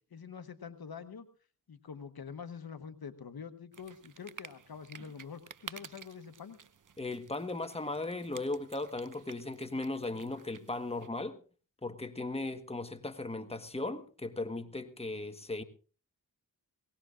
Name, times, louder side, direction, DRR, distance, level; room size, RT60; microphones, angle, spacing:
voice 1, 0.1-1.3 1.7-6.6, left 6 dB, 65° left, 1.2 m, -46 dB
sound 1, 3.7-11.1, right 7 dB, 55° right, 0.9 m, -52 dB
voice 2, 7.0-11.4 11.8-15.6, left 2 dB, 15° left, 1.3 m, -37 dB
22.0 x 18.5 x 2.5 m
cardioid pair, 50°, 38 cm